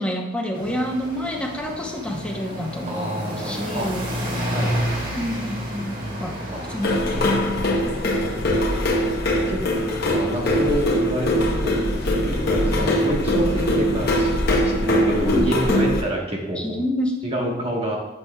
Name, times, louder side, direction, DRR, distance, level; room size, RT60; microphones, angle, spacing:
voice 1, 0.0-4.1 5.1-6.3 6.7-7.1 15.2-15.5 16.6-17.1, equal, 5° left, 0 dB, 0.8 m, -28 dB
sound 1, 0.5-15.7, equal, 45° right, 1.5 m, -33 dB
voice 2, 2.8-3.9 4.5-4.7 5.9-6.6 7.1-8.6 9.0-9.1 9.5-9.6 10.1-16.8 17.2-18.0, right 1 dB, 30° right, -1 dB, 1.3 m, -29 dB
sound 2, 6.8-16.0, left 1 dB, 55° left, 0.9 m, -21 dB
7.9 x 6.0 x 2.3 m, 1.0 s
head